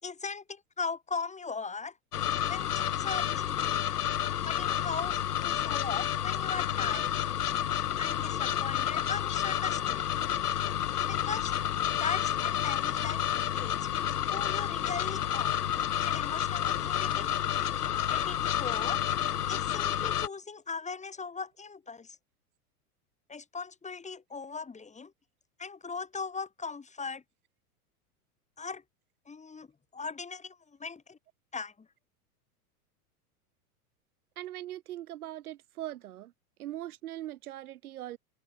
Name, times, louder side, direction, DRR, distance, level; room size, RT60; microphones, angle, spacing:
voice 1, 0.0-2.0 2.5-3.8 4.4-7.2 8.0-10.1 11.1-11.5 11.9-13.9 14.3-15.7 16.0-17.3 18.1-19.0 19.5-22.2 23.3-25.1 25.6-27.2 28.6-28.8 29.3-29.7 29.9-31.2 31.5-31.9, left 4 dB, 15° left, 5.1 m, -39 dB
sound 1, 2.1-20.3, left 10 dB, 80° left, 1.5 m, -30 dB
voice 2, 34.4-36.3 36.6-38.2, right 13 dB, 70° right, 2.5 m, -41 dB
hypercardioid pair, 100°, 45 cm